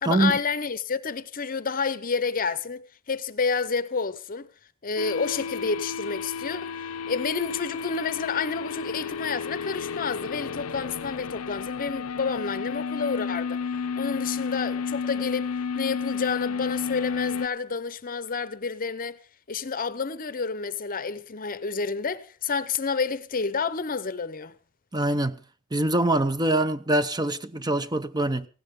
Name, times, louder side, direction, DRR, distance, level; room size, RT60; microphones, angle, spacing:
voice 1, 0.0-4.5 4.8-13.6 14.0-15.5 15.7-19.2 19.5-24.5, left 5 dB, 40° left, 0.8 m, -29 dB
sound 1, 5.0-17.5, left 6 dB, 75° left, 0.6 m, -32 dB
voice 2, 24.9-25.4 25.7-28.5, right 1 dB, 20° right, 0.7 m, -24 dB
17.5 x 16.0 x 3.7 m
head